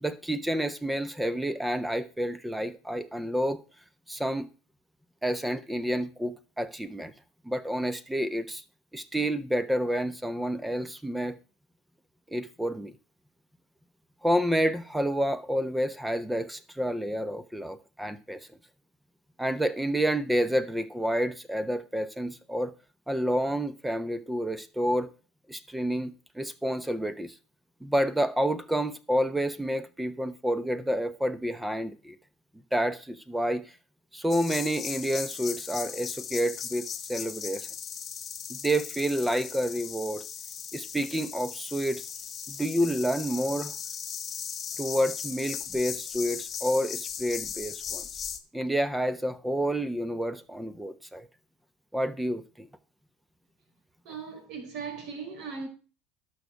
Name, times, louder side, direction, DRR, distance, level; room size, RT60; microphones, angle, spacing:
voice 1, 0.0-3.6 4.1-4.5 5.2-7.1 7.4-8.6 8.9-11.4 12.3-12.9 14.2-18.4 19.4-22.7 23.1-25.1 25.5-27.3 27.8-32.1 32.7-33.6 34.1-37.7 38.5-40.2 40.7-42.0 42.5-43.7 44.8-48.0 48.5-51.3 51.9-52.7, equal, 5° right, 1.1 m, -29 dB
sound 1, 34.3-48.4, left 8 dB, 35° left, 1.6 m, -38 dB
voice 2, 54.0-55.7, right 5 dB, 60° right, 4.6 m, -38 dB
11.5 x 6.5 x 4.6 m
hypercardioid pair, 85°, 0 cm